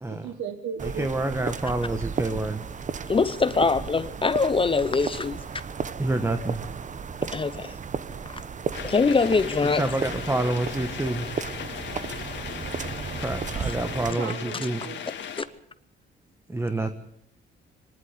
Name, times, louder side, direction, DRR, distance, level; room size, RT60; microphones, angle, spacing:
voice 1, 0.1-1.1 14.2-15.1, right 7 dB, 75° right, 1.7 m, -35 dB
voice 2, 0.8-2.7 6.0-6.6 9.8-11.3 13.2-14.8 16.5-16.9, right 2 dB, 15° right, 1.4 m, -28 dB
sound 1, 0.8-14.1, right 6 dB, 40° right, 1.1 m, -34 dB
voice 3, 3.1-5.4 7.3-7.8 8.3-8.4 8.8-10.0 13.6-13.8 15.4-15.5, left 4 dB, 25° left, 0.9 m, -23 dB
sound 2, 8.7-15.4, left 9 dB, 65° left, 2.5 m, -37 dB
25.0 x 11.0 x 9.8 m
cardioid pair, 90°, 20 cm